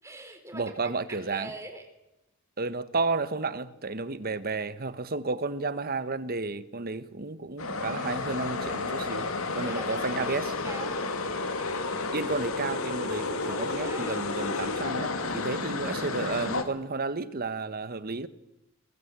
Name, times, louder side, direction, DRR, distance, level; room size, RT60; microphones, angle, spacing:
voice 1, 0.0-1.9 9.6-10.4 10.6-11.3 13.5-14.3, right 2 dB, 15° right, 4.2 m, -43 dB
voice 2, 0.5-1.5 2.6-9.3 9.5-10.5 12.1-18.3, right 3 dB, 45° right, 1.3 m, -32 dB
sound 1, 7.6-16.6, left 3 dB, 80° left, 2.5 m, -31 dB
22.0 x 19.5 x 8.2 m
head